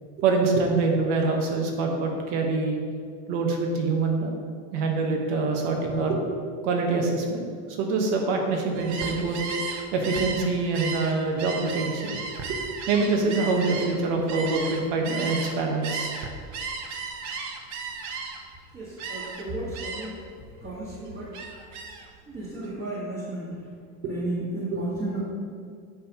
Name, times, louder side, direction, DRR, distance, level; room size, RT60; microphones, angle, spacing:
voice 1, 0.2-2.8 3.3-4.3 4.7-6.2 6.6-7.5 7.8-9.4 9.9-12.1 12.5-12.6 12.9-16.1 24.7-24.8, right 3 dB, 70° right, 2 dB, 1.4 m, -25 dB
Gull seagull, 8.7-15.5 15.8-18.5 19.0-19.4 19.7-20.2 20.6-22.1, right 5 dB, 50° right, 0.9 m, -34 dB
voice 2, 18.7-20.2 20.6-21.3 22.3-23.5 24.0-25.2, right 2 dB, 25° right, -8 dB, 1.7 m, -33 dB
9.2 x 5.9 x 3.0 m, 2.2 s
supercardioid pair, 130°, 36 cm